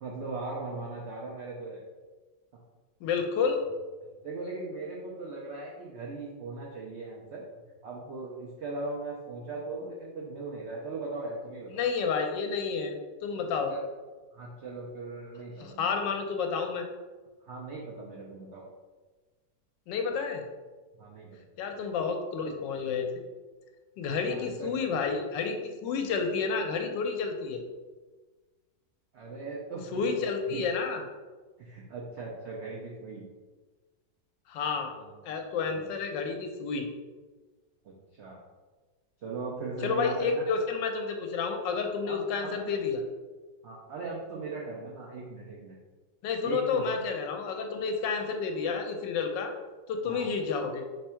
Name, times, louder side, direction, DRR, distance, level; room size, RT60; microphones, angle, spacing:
voice 1, 0.0-1.8 4.2-7.4 7.8-11.8 13.7-13.8 14.3-16.0 17.4-18.7 21.0-21.4 24.2-24.7 29.1-30.2 30.5-30.6 31.6-33.3 34.8-35.2 35.6-35.9 37.8-38.4 39.2-40.4 42.0-42.8 43.6-45.8 46.4-46.9 50.1-50.3, right 3 dB, 80° right, -2 dB, 0.6 m, -39 dB
voice 2, 3.0-3.6 11.7-12.9 13.2-13.7 15.6-16.9 19.9-20.4 21.6-23.1 24.0-27.6 29.9-31.0 34.5-34.9 35.3-36.9 39.8-43.0 46.2-49.5 49.9-50.8, left 5 dB, 85° left, 4 dB, 1.3 m, -30 dB
3.5 x 3.3 x 4.3 m, 1.3 s
omnidirectional pair, 1.9 m